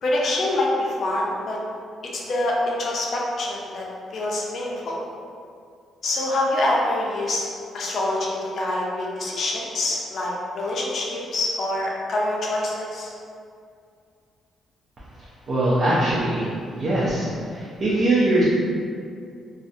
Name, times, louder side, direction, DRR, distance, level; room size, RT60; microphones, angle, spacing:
voice 1, 0.0-1.6 2.1-3.9 4.1-5.0 6.0-7.5 7.7-13.1, left 1 dB, 55° left, -3 dB, 0.5 m, -25 dB
voice 2, 15.5-16.5 16.8-18.4, right 1 dB, 50° right, -9 dB, 0.5 m, -21 dB
2.4 x 2.1 x 2.6 m, 2.3 s
cardioid pair, 90°, 0 cm